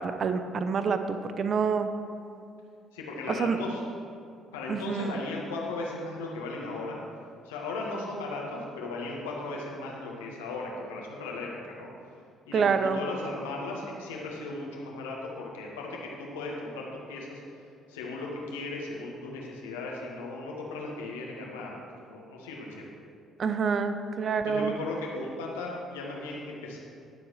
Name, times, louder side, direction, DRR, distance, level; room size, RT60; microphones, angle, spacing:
voice 1, 0.0-1.9 3.3-3.6 4.7-5.3 12.5-13.0 23.4-24.7, right 5 dB, 45° right, 9 dB, 0.7 m, -27 dB
voice 2, 2.9-3.8 4.5-7.0 7.4-11.9 12.5-17.4 17.9-21.7 22.0-22.9 24.4-26.8, left 2 dB, 75° left, -2 dB, 1.6 m, -37 dB
18.5 x 7.1 x 3.2 m, 2.4 s
figure-of-eight pair, 50°, 0 cm